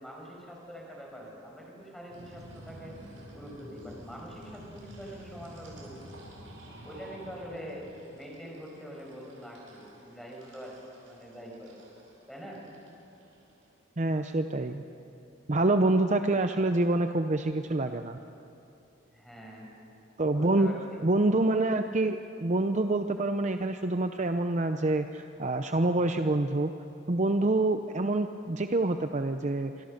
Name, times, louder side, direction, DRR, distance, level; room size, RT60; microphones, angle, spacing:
voice 1, 0.0-3.0 3.3-6.4 6.8-7.9 8.1-11.8 12.3-12.6 19.1-19.7 20.3-21.0, equal, ahead, -2 dB, 5.6 m, -44 dB
sound 1, 2.1-13.6, right 1 dB, 90° right, 7.7 m, -50 dB
voice 2, 14.0-14.8 15.5-18.2 20.2-20.7 21.0-26.7 27.1-29.7, right 2 dB, 35° right, 7 dB, 0.7 m, -26 dB
26.0 x 26.0 x 6.6 m, 2.7 s
head